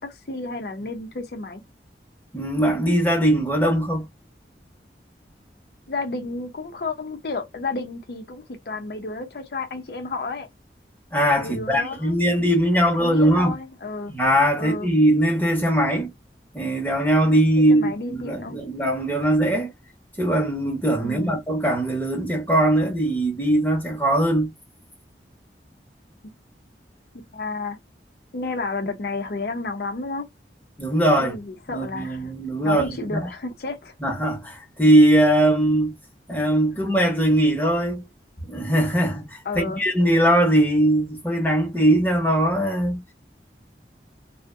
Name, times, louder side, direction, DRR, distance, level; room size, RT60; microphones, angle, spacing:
voice 1, 0.0-1.6 5.9-10.5 11.4-12.1 13.0-14.1 14.6-14.9 17.7-18.5 21.0-21.4 27.3-27.8 28.3-30.3 31.2-32.3 32.6-33.9 39.4-39.8, left 3 dB, 65° left, 0.5 m, -31 dB
voice 2, 2.3-4.1 11.1-13.5 14.1-16.1 16.5-19.7 20.2-24.5 30.8-31.3 31.7-33.2 34.0-35.9 36.3-38.0 38.4-43.0, right 1 dB, 10° left, 0.8 m, -20 dB
2.6 x 2.0 x 2.4 m
head